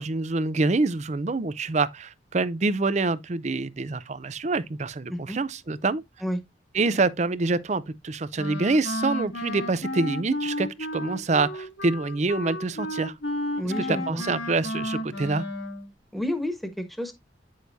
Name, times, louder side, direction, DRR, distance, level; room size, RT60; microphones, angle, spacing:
voice 1, 0.0-6.0 6.7-13.1 13.6-15.4, right 3 dB, 40° right, 0.5 m, -26 dB
Wind instrument woodwind instrument, 8.4-15.9, left 1 dB, 80° left, 2.6 m, -32 dB
voice 2, 13.6-14.2 16.1-17.1, equal, ahead, 1.3 m, -30 dB
9.4 x 6.4 x 2.7 m
head